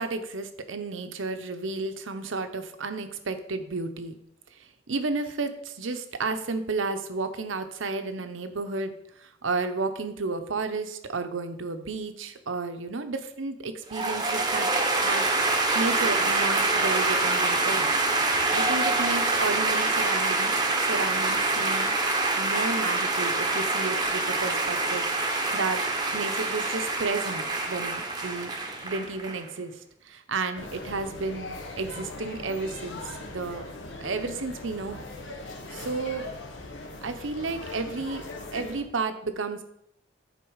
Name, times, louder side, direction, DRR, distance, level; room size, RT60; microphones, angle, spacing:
voice 1, 0.0-4.1 4.6-8.9 9.2-14.7 15.0-15.3 15.7-20.5 20.8-21.9 22.3-25.8 26.1-28.5 28.8-29.7 30.0-33.0 33.3-33.6 34.0-35.0 35.7-36.3 37.0-38.2 38.5-39.6, right 3 dB, 85° right, 8 dB, 0.8 m, -32 dB
sound 1, 13.9-29.4, right 3 dB, 20° right, 0.9 m, -26 dB
sound 2, 30.6-38.8, left 2 dB, 70° left, 1.3 m, -40 dB
10.0 x 4.4 x 4.8 m, 0.74 s
head